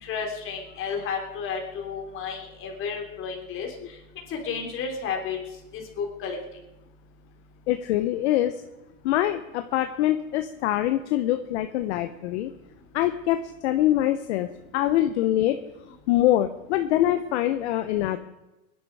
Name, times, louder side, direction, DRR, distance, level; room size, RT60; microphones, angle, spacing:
voice 1, 0.0-3.7 4.3-5.4 5.7-6.4, left 6 dB, 30° left, 1 dB, 3.4 m, -32 dB
voice 2, 7.7-8.6 9.0-12.5 12.9-14.5 14.7-15.6 16.1-18.2, left 13 dB, 55° left, 9 dB, 0.9 m, -24 dB
20.5 x 11.0 x 4.8 m, 0.99 s
supercardioid pair, 145°, 42 cm